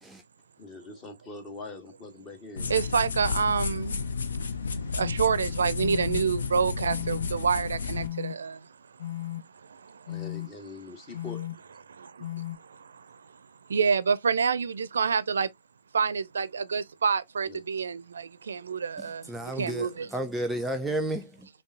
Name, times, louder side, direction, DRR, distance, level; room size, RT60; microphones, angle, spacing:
voice 1, 0.6-2.8 10.1-11.4 17.5-17.6, left 3 dB, 30° left, 1.3 m, -43 dB
sound 1, 2.6-8.1, left 5 dB, 75° left, 0.6 m, -32 dB
voice 2, 2.7-4.0 4.9-8.7 9.6-10.0 11.1-11.2 11.9-13.2 13.7-15.5 15.9-20.1, right 6 dB, 75° right, 0.4 m, -28 dB
sound 2, 5.0-5.1 5.8-6.2 6.9-7.3 7.9-8.3 9.0-9.4 10.1-10.5 11.1-11.5 12.2-12.5, left 13 dB, 50° left, 1.1 m, -35 dB
voice 3, 19.0-21.5, right 1 dB, 5° right, 0.5 m, -32 dB
5.2 x 2.3 x 2.5 m
hypercardioid pair, 115°, 0 cm